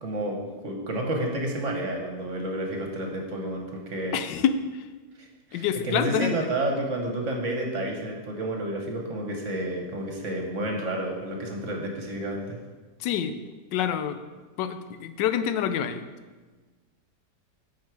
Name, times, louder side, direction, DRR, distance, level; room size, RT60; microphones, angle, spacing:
voice 1, 0.0-4.2 5.2-12.6, right 1 dB, 50° right, 1 dB, 1.2 m, -30 dB
voice 2, 4.1-4.8 5.5-6.4 13.0-13.3 13.7-14.2 14.6-16.1, left 8 dB, 90° left, 10 dB, 1.3 m, -27 dB
9.4 x 4.6 x 4.7 m, 1.3 s
omnidirectional pair, 1.9 m